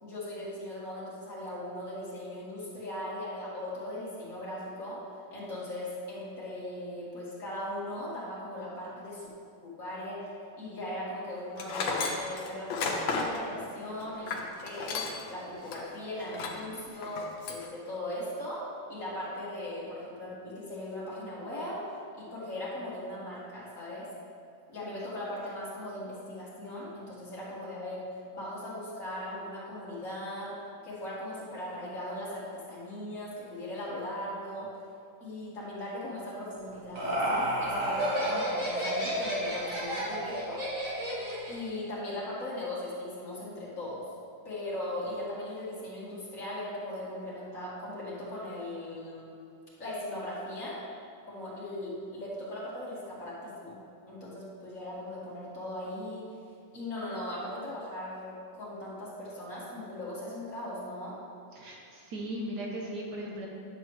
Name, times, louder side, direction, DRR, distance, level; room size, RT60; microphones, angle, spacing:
voice 1, 0.0-5.0 5.3-9.3 9.6-10.2 10.6-17.2 17.5-18.6 18.9-21.8 22.2-24.1 24.7-28.0 28.3-30.6 30.8-34.7 35.2-40.6 41.5-44.0 44.4-49.3 49.8-50.8 51.3-53.8 54.1-56.2 56.7-61.2, left 1 dB, 45° left, -8 dB, 2.3 m, -39 dB
Tools, 11.6-15.3 15.7-15.8 16.3-16.7 17.0-17.7, left 4 dB, 80° left, 1.6 m, -33 dB
Laughter, 36.5-41.7, equal, 45° right, 1.9 m, -31 dB
voice 2, 61.5-63.5, right 1 dB, 65° right, -1 dB, 1.4 m, -37 dB
10.0 x 6.9 x 3.1 m, 2.5 s
omnidirectional pair, 2.1 m